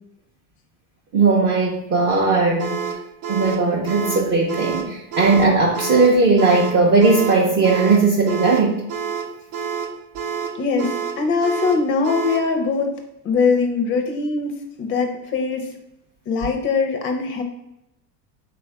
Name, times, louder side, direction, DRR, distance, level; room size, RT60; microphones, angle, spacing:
voice 1, 1.1-2.8 3.3-8.8, right 3 dB, 30° right, -3 dB, 0.5 m, -17 dB
sound 1, 2.6-12.5, right 6 dB, 80° right, 0.8 m, -29 dB
voice 2, 10.6-12.9 13.2-15.7 16.3-17.4, left 4 dB, 35° left, 5 dB, 0.4 m, -22 dB
4.1 x 2.3 x 4.4 m, 0.88 s
cardioid pair, 155°, 39 cm